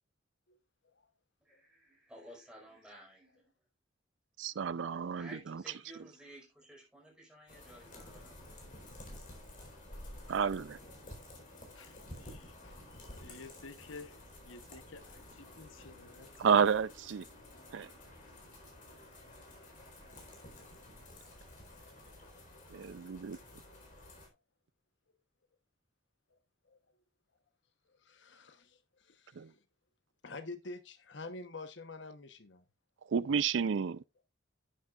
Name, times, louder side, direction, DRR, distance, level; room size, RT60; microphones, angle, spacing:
voice 1, 1.4-3.5 5.0-8.4, right 1 dB, 5° right, 4.9 m, -54 dB
voice 2, 4.4-5.6 10.3-10.8 16.4-17.2 17.7-17.9 22.7-23.4 29.4-29.5 33.1-34.0, right 6 dB, 70° right, 0.4 m, -31 dB
sound 1, 7.5-24.3, left 1 dB, 40° left, 4.2 m, -52 dB
voice 3, 11.7-12.4 13.2-16.5, left 3 dB, 90° left, 1.1 m, -52 dB
voice 4, 20.2-20.5 22.4-22.5 23.9-24.0 26.7-26.8 27.9-29.6 30.2-32.6, left 3 dB, 65° left, 1.1 m, -48 dB
11.0 x 10.5 x 2.5 m
head